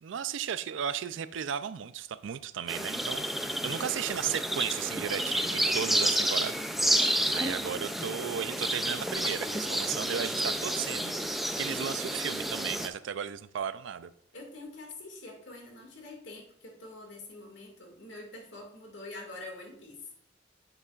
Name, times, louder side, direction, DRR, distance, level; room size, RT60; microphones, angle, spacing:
voice 1, 0.0-6.7 7.3-14.1, right 8 dB, 80° right, 14 dB, 0.4 m, -35 dB
sound 1, 2.7-12.9, right 1 dB, ahead, 0.3 m, -30 dB
voice 2, 3.6-3.9 14.3-20.1, left 2 dB, 70° left, 0 dB, 2.0 m, -46 dB
9.2 x 6.8 x 2.4 m, 0.70 s
head